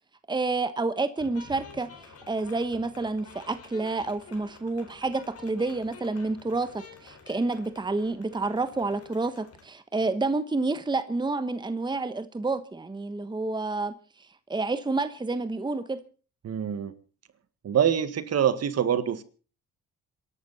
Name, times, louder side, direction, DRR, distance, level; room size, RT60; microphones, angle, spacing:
voice 1, 0.3-16.0, right 3 dB, 15° right, 1.1 m, -29 dB
sound 1, 1.2-9.7, left 5 dB, 50° left, 4.4 m, -50 dB
voice 2, 16.4-16.9 17.6-19.2, right 9 dB, 55° right, 1.8 m, -25 dB
27.0 x 11.5 x 4.2 m
cardioid pair, 90°, 30 cm